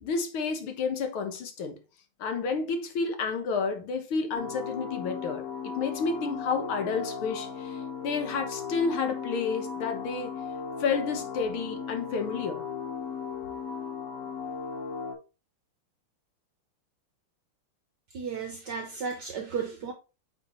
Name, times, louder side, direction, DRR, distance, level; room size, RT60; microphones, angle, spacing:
voice 1, 0.0-1.8 2.2-5.4 5.8-10.3 10.8-12.7, left 5 dB, 75° left, 2.1 m, -30 dB
sound 1, 4.3-15.1, left 6 dB, 45° left, 2.9 m, -36 dB
voice 2, 18.1-19.9, right 6 dB, 60° right, 1.3 m, -34 dB
9.0 x 4.9 x 3.1 m
omnidirectional pair, 2.3 m